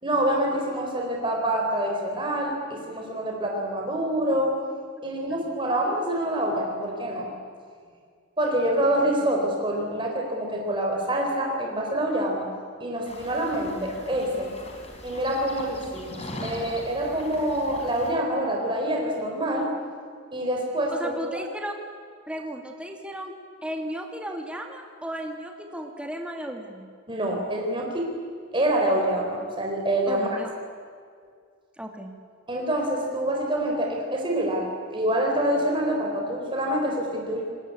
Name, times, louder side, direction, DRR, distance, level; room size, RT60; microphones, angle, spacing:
voice 1, 0.0-4.6 5.0-7.3 8.4-12.5 12.8-14.5 15.0-19.7 20.3-21.1 27.1-28.1 28.5-30.3 32.5-37.4, right 1 dB, 25° right, 0 dB, 4.3 m, -26 dB
sound 1, 13.1-18.1, left 1 dB, 30° left, 4.3 m, -40 dB
voice 2, 20.9-21.7 22.3-23.3 23.6-26.9 30.1-30.5 31.8-32.1, equal, 5° right, 3 dB, 2.2 m, -35 dB
29.0 x 20.5 x 8.5 m, 2.1 s
head